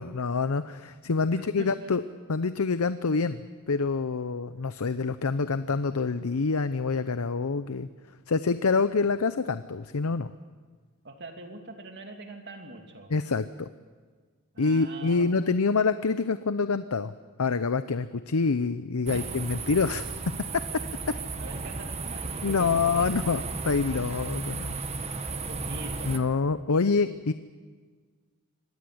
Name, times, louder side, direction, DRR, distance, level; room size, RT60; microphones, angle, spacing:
voice 1, 0.0-2.0 2.3-3.4 3.7-7.9 8.3-10.3 13.1-13.7 14.6-17.1 17.4-20.1 22.4-24.7 26.0-27.3, left 4 dB, 85° left, 12 dB, 0.7 m, -26 dB
voice 2, 1.3-1.9 11.0-13.1 14.5-15.3 19.1-19.3 21.4-23.5 25.1-26.2, right 2 dB, 50° right, 4 dB, 2.9 m, -44 dB
sound 1, 19.1-26.2, right 3 dB, 30° right, 1.4 m, -34 dB
25.0 x 19.0 x 7.9 m, 1.5 s
head